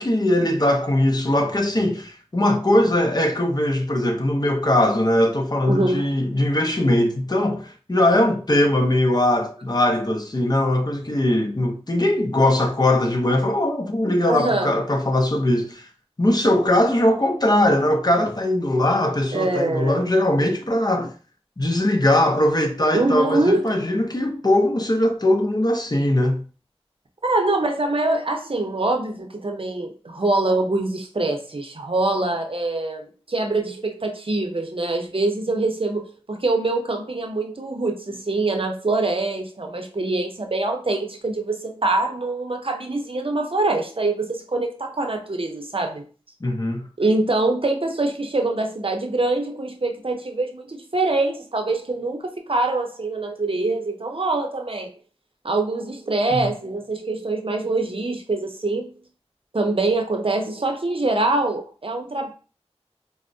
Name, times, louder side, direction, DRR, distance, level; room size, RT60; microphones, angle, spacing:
voice 1, 0.0-15.9 16.2-21.1 21.6-26.4 46.4-46.9 56.3-56.5, left 1 dB, 40° left, 0.5 m, -20 dB
voice 2, 5.7-6.1 14.3-14.7 19.3-20.1 22.9-23.8 27.2-46.1 47.0-54.9 55.4-58.9 59.5-62.3, right 2 dB, 55° right, 0.6 m, -24 dB
4.2 x 2.0 x 2.6 m
wide cardioid pair, 45°, 11 cm